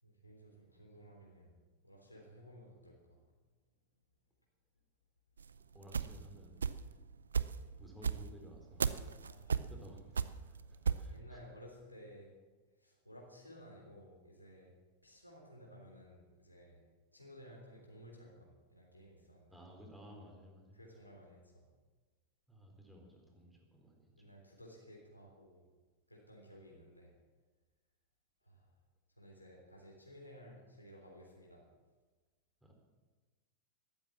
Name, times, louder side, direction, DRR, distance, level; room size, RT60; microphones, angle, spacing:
voice 1, 0.0-1.5 1.8-3.2 9.2-9.6 11.1-12.3 12.8-14.7 15.0-16.8 17.1-19.6 20.7-21.6 24.2-25.6 26.1-27.1 28.4-28.7 29.2-31.6, equal, 85° left, -2 dB, 3.6 m, -56 dB
sound 1, 5.4-7.0 7.3-11.1, right 6 dB, 70° right, 0.5 m, -35 dB
voice 2, 5.7-6.7 7.8-8.9 9.5-11.4 19.5-20.9 22.5-24.4 32.6-32.7, equal, ahead, 0 dB, 3.8 m, -56 dB
13.5 x 12.5 x 7.3 m, 1.3 s
figure-of-eight pair, 90°, 0 cm